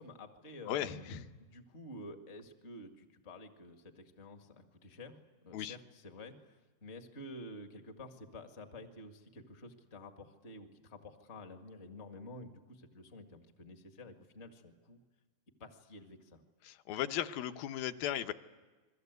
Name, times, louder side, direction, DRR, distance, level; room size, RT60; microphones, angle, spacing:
voice 1, 0.0-5.2 5.4-15.0 15.6-16.4, left 1 dB, 50° left, 5 dB, 0.7 m, -50 dB
voice 2, 0.7-1.2 5.5-5.8 16.6-18.3, left 11 dB, 75° left, 9 dB, 2.6 m, -36 dB
29.0 x 22.5 x 8.1 m, 1.3 s
omnidirectional pair, 4.6 m